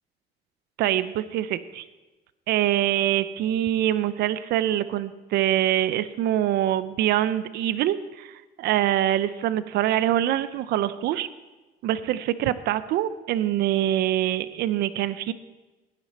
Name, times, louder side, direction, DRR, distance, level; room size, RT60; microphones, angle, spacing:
voice 1, 0.8-1.8 2.5-11.3 11.8-15.3, right 12 dB, 75° right, 15 dB, 0.6 m, -24 dB
15.0 x 9.8 x 4.2 m, 1.2 s
cardioid pair, 110°, 17 cm